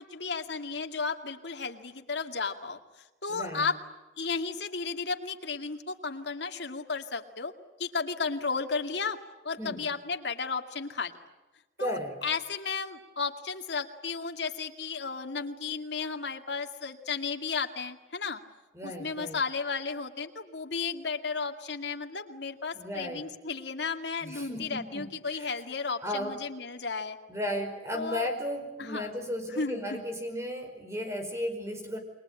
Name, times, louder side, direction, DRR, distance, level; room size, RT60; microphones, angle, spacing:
voice 1, 0.0-2.8 3.2-3.8 4.2-7.5 7.8-9.2 9.4-11.1 11.8-18.4 18.8-27.2 27.9-28.3 28.8-29.1 29.5-30.0, left 4 dB, 70° left, 5 dB, 2.2 m, -34 dB
voice 2, 3.3-3.7 9.6-9.8 11.8-12.2 18.7-19.4 22.7-23.3 24.2-25.1 25.4-25.5 26.0-26.4 27.3-32.0, left 1 dB, 15° right, 6 dB, 4.9 m, -35 dB
29.0 x 22.5 x 8.9 m, 1.1 s
head